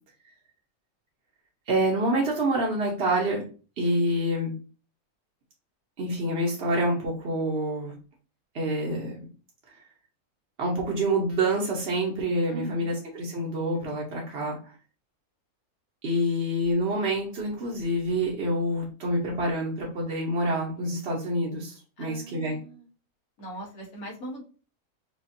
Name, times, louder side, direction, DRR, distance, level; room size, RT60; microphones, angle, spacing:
voice 1, 1.7-3.5 3.8-4.5 6.0-7.9 8.5-9.2 10.6-14.7 16.0-22.6, right 1 dB, 50° right, -2 dB, 1.0 m, -27 dB
voice 2, 12.5-13.0 22.0-22.9 23.4-24.4, right 1 dB, 80° left, -3 dB, 1.7 m, -39 dB
5.0 x 2.4 x 2.6 m, 0.36 s
omnidirectional pair, 1.5 m